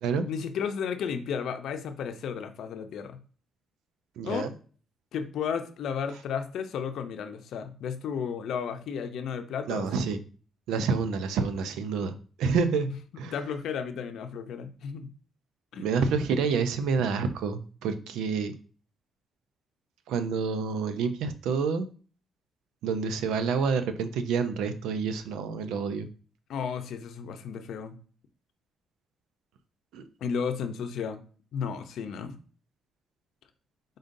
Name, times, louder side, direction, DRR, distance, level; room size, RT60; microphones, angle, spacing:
voice 1, 0.3-3.2 4.2-4.5 5.1-9.9 13.2-15.1 15.7-15.9 26.5-28.0 30.2-31.2 31.5-32.4, left 7 dB, 75° left, 8 dB, 0.6 m, -33 dB
voice 2, 4.2-4.5 9.7-10.2 10.7-13.3 15.8-18.5 20.1-21.9 22.8-26.1 29.9-30.1, right 5 dB, 90° right, 10 dB, 0.5 m, -28 dB
5.2 x 3.8 x 2.6 m, 0.40 s
cardioid pair, 90°, 0 cm